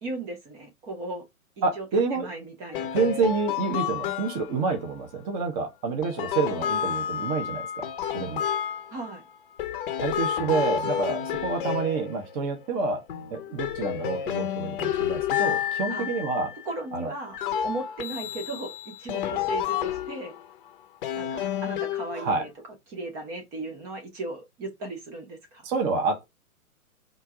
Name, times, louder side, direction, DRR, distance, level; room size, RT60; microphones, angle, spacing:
voice 1, 0.0-1.2 1.8-1.9 2.1-3.4 8.9-9.2 15.9-16.1 16.6-17.4 17.6-20.3 21.2-22.5 22.9-25.6, right 2 dB, 10° right, 0.5 m, -36 dB
voice 2, 1.6-2.3 2.9-8.5 10.0-13.0 13.3-16.5 16.9-17.1 22.1-22.5 25.6-26.2, right 4 dB, 25° right, 1.0 m, -28 dB
sound 1, 2.7-4.7 6.0-9.2 9.6-12.7 13.1-16.6 17.3-20.5 21.0-22.5, left 9 dB, 35° left, 0.7 m, -30 dB
4.4 x 2.6 x 4.6 m
hypercardioid pair, 140°, 43 cm